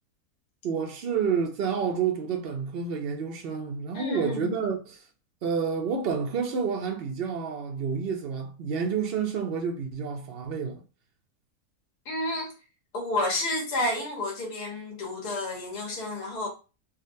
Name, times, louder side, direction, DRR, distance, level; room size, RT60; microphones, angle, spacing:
voice 1, 0.6-5.0 5.4-10.7, right 6 dB, 70° right, 0.5 m, -29 dB
voice 2, 3.9-4.5 12.0-12.5 12.9-16.5, left 1 dB, 85° left, 1.6 m, -30 dB
3.7 x 2.1 x 2.6 m
omnidirectional pair, 1.6 m